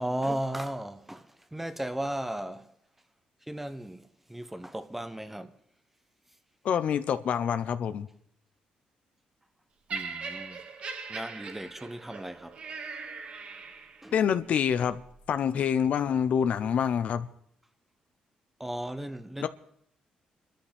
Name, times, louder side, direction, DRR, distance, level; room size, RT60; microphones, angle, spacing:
voice 1, 0.0-2.7 3.4-5.6 9.9-10.6 11.1-12.6 14.0-14.2 18.6-19.5, right 1 dB, 10° right, 1.0 m, -36 dB
voice 2, 6.6-8.1 14.1-15.0 15.3-17.3 19.4-19.5, left 8 dB, 65° left, 0.8 m, -26 dB
Laughter, 9.9-14.1 14.9-15.1, right 5 dB, 55° right, 2.1 m, -40 dB
25.5 x 13.0 x 3.5 m
cardioid pair, 85°, 2 cm